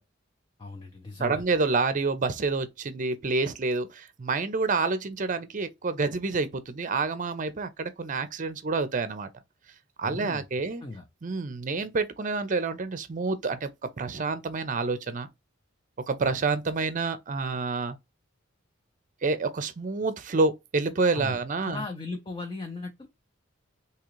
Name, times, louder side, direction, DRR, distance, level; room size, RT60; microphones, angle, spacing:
voice 1, 0.6-1.4 10.0-10.4 10.8-11.0 21.1-21.4 21.6-23.1, left 3 dB, 25° left, 0.6 m, -37 dB
voice 2, 1.2-9.3 10.0-10.8 11.2-13.7 14.0-15.3 16.1-18.0 19.2-21.8, right 3 dB, 40° right, 0.6 m, -28 dB
3.7 x 2.9 x 3.0 m
head